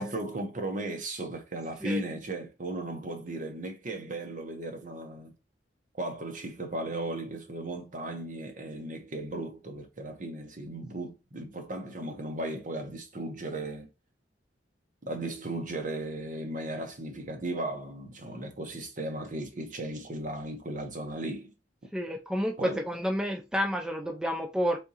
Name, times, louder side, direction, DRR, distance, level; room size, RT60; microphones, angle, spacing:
voice 1, 0.0-5.3 5.9-13.9 15.0-21.5 22.6-22.8, right 1 dB, 45° right, 1.0 m, -36 dB
voice 2, 21.9-24.8, equal, 5° right, 0.4 m, -30 dB
3.7 x 3.5 x 2.8 m
head